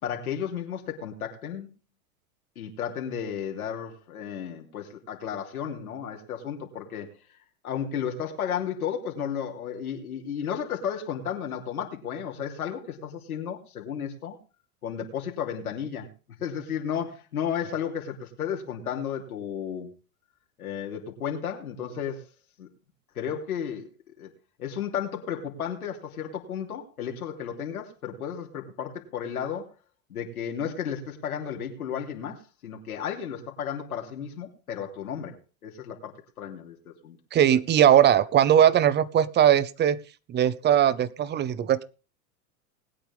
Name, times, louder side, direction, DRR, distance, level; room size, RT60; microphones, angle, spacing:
voice 1, 0.0-1.7 2.6-7.1 7.6-14.4 14.8-16.1 16.4-19.9 20.6-22.3 22.6-22.7 23.1-23.9 24.2-24.3 24.6-29.7 30.1-35.4 35.6-37.2, left 8 dB, 85° left, 3.0 m, -33 dB
voice 2, 37.3-40.0 40.3-41.8, right 10 dB, 25° right, 0.7 m, -20 dB
20.0 x 8.8 x 3.5 m
hypercardioid pair, 105°, 43 cm